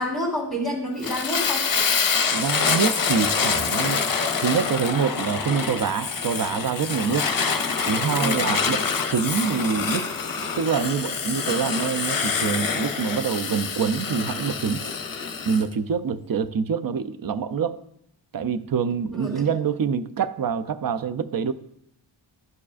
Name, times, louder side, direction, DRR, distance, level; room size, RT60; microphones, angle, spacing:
voice 1, 0.0-1.7 8.1-8.5 19.1-19.5, equal, ahead, -5 dB, 2.1 m, -28 dB
Fire, 1.0-15.6, left 5 dB, 45° left, 0.7 m, -26 dB
voice 2, 2.3-4.0 4.4-7.3 7.9-8.8 9.1-10.1 10.4-14.8 15.4-17.8 18.3-21.5, right 6 dB, 45° right, 13 dB, 0.5 m, -25 dB
12.0 x 4.6 x 2.5 m, 0.76 s
cardioid pair, 45°, 47 cm